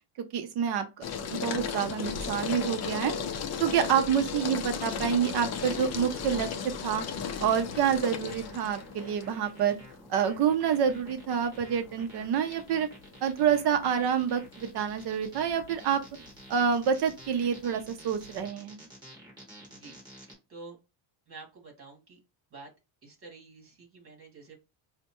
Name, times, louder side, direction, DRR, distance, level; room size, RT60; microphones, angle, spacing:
voice 1, 0.3-1.0 1.3-3.1 3.6-7.0 7.4-9.8 10.1-12.9 13.2-16.0 16.5-18.8, right 8 dB, 55° right, 0.6 m, -27 dB
sound 1, 1.0-18.5, left 6 dB, 35° left, 0.4 m, -37 dB
sound 2, 5.1-20.3, right 1 dB, 10° right, 1.9 m, -51 dB
voice 2, 20.2-20.8 21.3-22.2 22.5-22.7 23.0-24.6, right 3 dB, 25° right, 1.9 m, -49 dB
5.3 x 2.1 x 2.9 m
cardioid pair, 170°, 49 cm